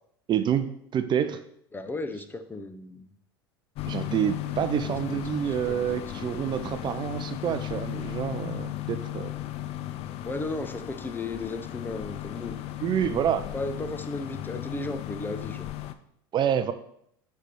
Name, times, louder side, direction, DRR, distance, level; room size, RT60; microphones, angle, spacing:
voice 1, 0.3-1.4 3.9-9.3 12.8-13.4 16.3-16.7, right 9 dB, 35° right, 10 dB, 0.6 m, -27 dB
voice 2, 1.7-3.1 4.8-6.4 10.2-12.5 13.5-15.7, left 2 dB, 15° left, 9 dB, 0.7 m, -35 dB
sound 1, 3.7-15.9, left 13 dB, 50° left, 0.6 m, -36 dB
8.0 x 3.4 x 5.9 m, 0.71 s
hypercardioid pair, 80°, 13 cm